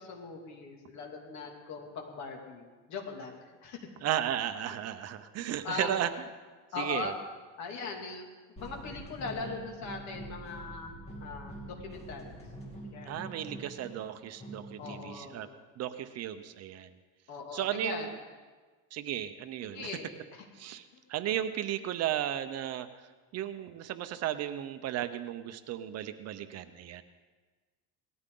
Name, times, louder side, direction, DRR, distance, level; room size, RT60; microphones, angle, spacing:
voice 1, 0.0-3.9 5.6-5.9 6.7-7.2 7.6-8.3 8.6-12.4 12.8-13.2 14.8-15.5 17.3-18.1 19.6-20.4, left 4 dB, 55° left, 2 dB, 2.5 m, -40 dB
voice 2, 4.0-6.1 6.8-7.1 13.0-15.5 15.8-16.9 17.5-18.1 18.9-19.9 20.6-22.9 23.3-27.0, right 11 dB, 50° right, 10 dB, 0.7 m, -34 dB
sound 1, 8.6-15.2, right 1 dB, 20° left, 2.7 m, -45 dB
18.5 x 13.5 x 3.8 m, 1.4 s
cardioid pair, 145°, 33 cm